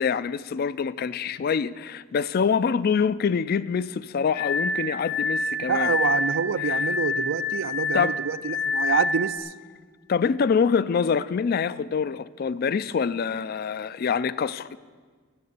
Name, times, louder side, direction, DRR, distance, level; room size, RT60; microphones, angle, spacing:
voice 1, 0.0-5.9 6.7-6.8 7.9-8.2 10.1-14.9, left 6 dB, 45° left, 0.3 m, -25 dB
Glass, 4.3-9.4, left 3 dB, 70° left, 1.7 m, -27 dB
voice 2, 5.7-9.5, right 6 dB, 70° right, 0.4 m, -27 dB
13.5 x 6.8 x 8.0 m
head